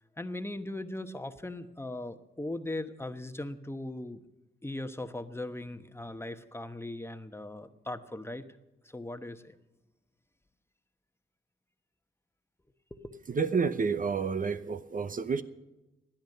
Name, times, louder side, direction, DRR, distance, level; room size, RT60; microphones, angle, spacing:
voice 1, 0.2-4.2 4.6-8.5 8.8-9.5 12.9-13.2, left 1 dB, 10° left, 9 dB, 1.1 m, -39 dB
voice 2, 13.3-15.4, right 5 dB, 45° right, 12 dB, 0.8 m, -29 dB
17.0 x 10.5 x 6.7 m, 1.0 s
cardioid pair, 60°, 20 cm